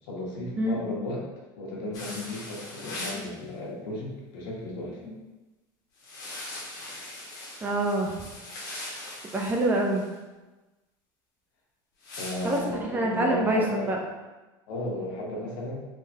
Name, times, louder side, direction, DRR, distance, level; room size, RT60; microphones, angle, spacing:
voice 1, 0.0-1.3 1.5-5.2 12.1-14.1 14.7-15.9, left 1 dB, 75° left, -3 dB, 1.1 m, -35 dB
sound 1, 1.9-3.3 6.0-10.1 12.0-12.6, left 2 dB, 35° left, 1.0 m, -40 dB
voice 2, 7.6-8.1 9.3-10.1 12.4-12.6 12.9-14.0, right 1 dB, 15° right, 0 dB, 0.4 m, -25 dB
3.7 x 3.3 x 2.7 m, 1.2 s
cardioid pair, 165°, 10 cm